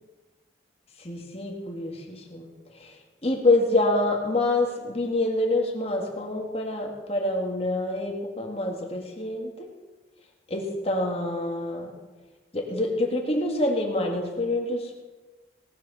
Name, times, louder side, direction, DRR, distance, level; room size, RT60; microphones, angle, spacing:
voice 1, 1.0-2.5 2.7-2.9 3.2-9.7 10.5-11.9 12.5-15.0, left 2 dB, 35° left, 1 dB, 2.0 m, -26 dB
18.0 x 13.0 x 4.3 m, 1.2 s
head